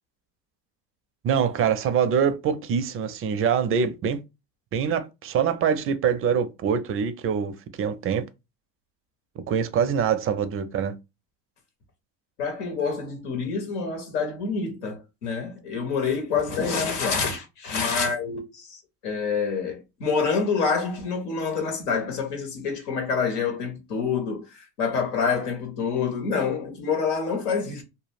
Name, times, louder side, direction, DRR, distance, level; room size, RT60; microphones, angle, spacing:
voice 1, 1.2-4.2 4.7-8.3 9.5-11.0, right 7 dB, 30° right, 0.4 m, -24 dB
voice 2, 12.4-27.8, left 5 dB, 85° left, 1.0 m, -27 dB
2.1 x 2.0 x 3.2 m
hypercardioid pair, 75°, 45 cm